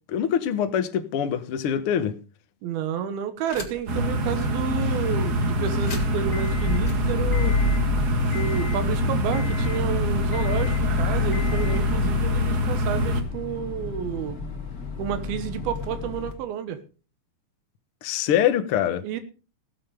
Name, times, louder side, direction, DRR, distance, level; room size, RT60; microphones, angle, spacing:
voice 1, 0.1-2.2 18.0-19.0, left 9 dB, 75° left, 1.2 m, -24 dB
voice 2, 2.6-7.6 8.3-14.6 15.0-16.8 19.0-19.2, right 8 dB, 90° right, 3.1 m, -30 dB
sound 1, 3.5-4.0 4.4-4.5 5.7-16.3, left 4 dB, 30° left, 1.9 m, -30 dB
sound 2, 3.9-13.2, equal, 45° right, 1.3 m, -25 dB
sound 3, 9.0-13.9, left 5 dB, 60° left, 0.7 m, -46 dB
17.0 x 7.9 x 5.0 m
omnidirectional pair, 4.2 m